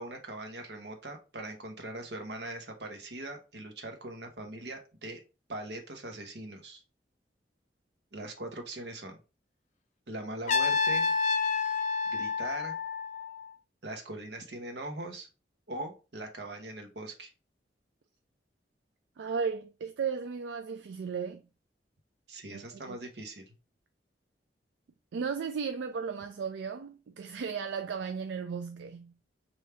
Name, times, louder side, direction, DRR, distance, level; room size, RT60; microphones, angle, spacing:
voice 1, 0.0-5.2 5.5-6.8 8.1-9.2 10.1-11.1 12.1-12.7 13.8-15.3 15.7-17.3 22.3-23.5, right 2 dB, 65° right, 1.0 m, -41 dB
Trumpet, 10.5-13.5, left 5 dB, 40° left, 0.4 m, -29 dB
voice 2, 19.2-21.4 22.5-23.0 25.1-29.1, right 6 dB, 85° right, 0.4 m, -35 dB
3.4 x 2.7 x 4.4 m
head